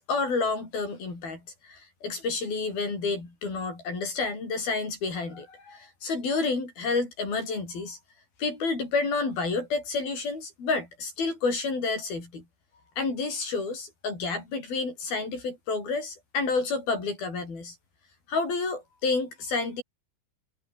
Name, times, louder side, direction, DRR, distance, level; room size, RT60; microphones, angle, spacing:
voice 1, 0.1-8.0 8.4-12.4 13.0-17.8 18.3-19.8, left 4 dB, 75° left, 10.0 m, -30 dB
omnidirectional pair, 4.3 m